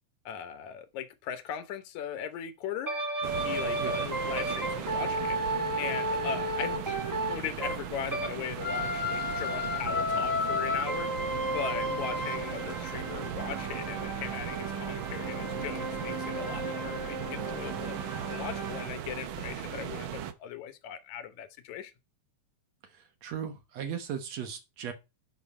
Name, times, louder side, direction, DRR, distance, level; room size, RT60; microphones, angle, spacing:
voice 1, 0.3-3.0 3.4-5.4 5.8-11.1 11.5-18.0 18.3-21.9, left 9 dB, 75° left, 2.3 m, -39 dB
sound 1, 2.8-8.3 8.6-18.9, equal, 30° right, 0.3 m, -33 dB
sound 2, 3.2-20.3, right 9 dB, 85° right, 1.1 m, -38 dB
voice 2, 22.9-24.9, right 8 dB, 65° right, 2.3 m, -37 dB
11.0 x 5.4 x 4.2 m
omnidirectional pair, 3.4 m